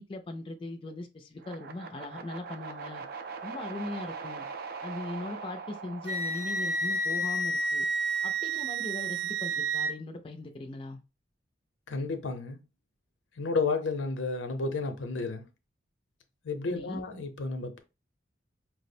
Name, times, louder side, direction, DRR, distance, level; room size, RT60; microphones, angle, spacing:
voice 1, 0.0-3.0 3.4-4.5 4.8-7.9 8.2-11.0 16.6-17.0, left 2 dB, 30° left, 0.4 m, -40 dB
sound 1, 1.4-7.5, right 5 dB, 55° right, 0.4 m, -42 dB
Wind instrument woodwind instrument, 6.0-9.9, right 2 dB, 85° right, 0.9 m, -30 dB
voice 2, 11.9-12.6 13.4-15.4 16.4-17.8, left 3 dB, 90° left, 0.6 m, -31 dB
4.7 x 2.0 x 2.6 m
head